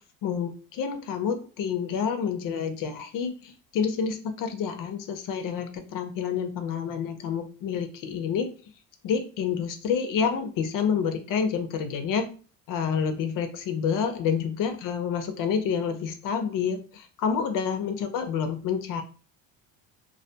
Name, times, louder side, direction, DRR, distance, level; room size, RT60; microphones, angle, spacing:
voice 1, 0.2-8.5 9.0-12.3 12.7-19.0, left 6 dB, 50° left, 8 dB, 0.5 m, -28 dB
2.3 x 2.2 x 2.7 m, 0.37 s
cardioid pair, 115°, 41 cm